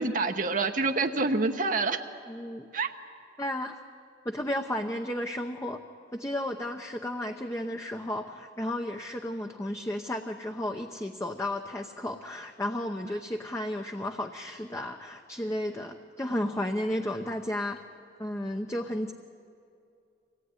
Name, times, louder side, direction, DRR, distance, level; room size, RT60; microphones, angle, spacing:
voice 1, 0.0-2.0 2.7-2.9, right 3 dB, 45° right, 5 dB, 0.9 m, -27 dB
voice 2, 2.3-2.7 3.4-3.8 4.2-5.8 6.1-17.9 18.2-19.1, left 1 dB, 15° left, 4 dB, 0.8 m, -33 dB
24.0 x 18.0 x 9.8 m, 2.5 s
head